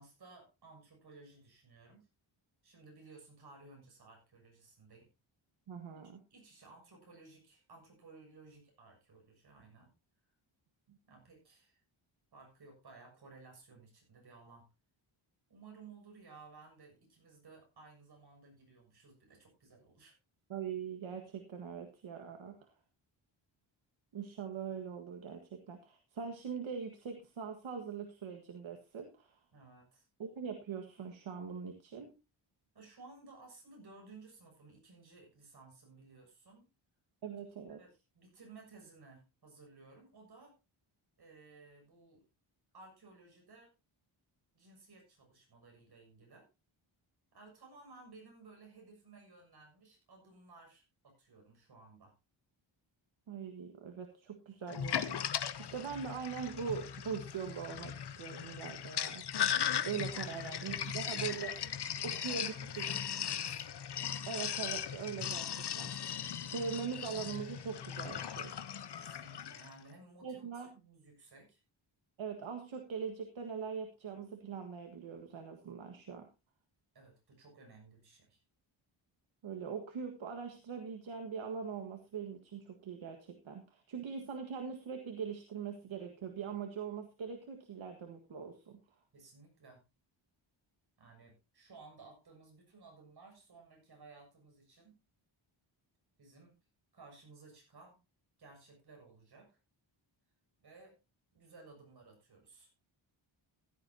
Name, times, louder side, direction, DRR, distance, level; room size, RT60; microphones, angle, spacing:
voice 1, 0.0-2.1 2.6-5.1 5.9-9.9 11.0-11.8 12.3-14.7 15.5-20.2 29.5-30.1 32.7-36.7 37.7-40.6 41.2-42.2 42.7-43.7 44.5-46.5 47.3-52.1 60.1-61.7 62.0-63.7 68.9-71.6 76.9-78.4 89.1-89.8 91.0-95.0 96.2-96.6 96.9-98.0 98.4-99.6 100.6-101.0 101.3-102.7, right 3 dB, 50° right, 1 dB, 7.0 m, -57 dB
voice 2, 5.7-6.2 10.9-11.0 20.5-22.6 24.1-29.4 30.2-32.2 37.2-37.8 53.3-59.4 59.8-61.5 62.0-62.8 64.3-65.9 66.5-68.5 70.2-70.7 72.2-76.3 79.4-88.8, right 6 dB, 70° right, 4 dB, 1.8 m, -42 dB
Sink (filling or washing), 54.7-69.7, left 9 dB, 55° left, 0.9 m, -38 dB
15.5 x 12.5 x 2.8 m, 0.26 s
wide cardioid pair, 170°, 50 cm